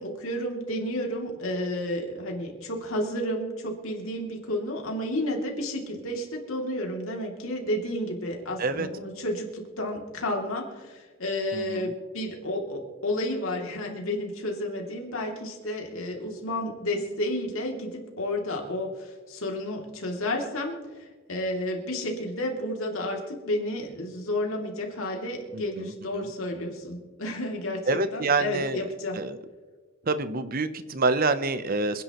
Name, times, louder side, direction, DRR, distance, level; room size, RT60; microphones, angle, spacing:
voice 1, 0.0-29.2, left 1 dB, 75° left, 0 dB, 2.8 m, -31 dB
voice 2, 11.5-11.9 25.5-26.3 27.9-28.8 29.1-29.4 30.1-32.0, right 3 dB, 45° right, 12 dB, 0.8 m, -27 dB
27.0 x 10.0 x 3.1 m, 1.4 s
head